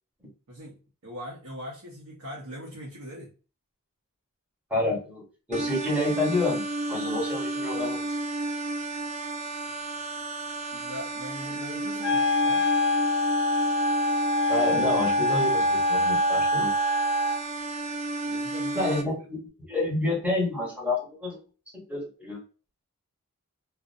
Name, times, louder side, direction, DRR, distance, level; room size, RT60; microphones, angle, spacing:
voice 1, 0.5-3.3 10.7-12.7 18.3-19.0, equal, 70° right, -2 dB, 0.7 m, -41 dB
voice 2, 4.7-8.1 14.5-16.7 18.7-21.4 21.7-22.4, left 2 dB, 5° right, -3 dB, 1.0 m, -29 dB
sound 1, 5.5-19.0, right 2 dB, 30° right, 0.3 m, -32 dB
Wind instrument woodwind instrument, 12.0-17.4, left 1 dB, 80° left, 0.5 m, -24 dB
2.5 x 2.0 x 2.6 m, 0.35 s
head